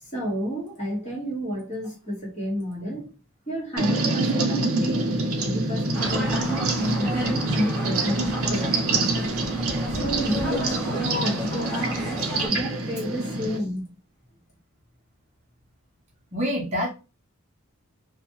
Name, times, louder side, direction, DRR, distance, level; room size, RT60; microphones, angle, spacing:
voice 1, 0.0-3.1 3.5-5.1 5.4-9.3 9.9-13.9, equal, 30° left, 1.3 m, -31 dB
sound 1, 3.8-13.6, right 2 dB, 75° right, 0.6 m, -26 dB
sound 2, 5.9-12.5, left 1 dB, ahead, 1.6 m, -33 dB
voice 2, 16.3-16.9, equal, 30° right, 0.7 m, -26 dB
2.6 x 2.2 x 3.0 m
head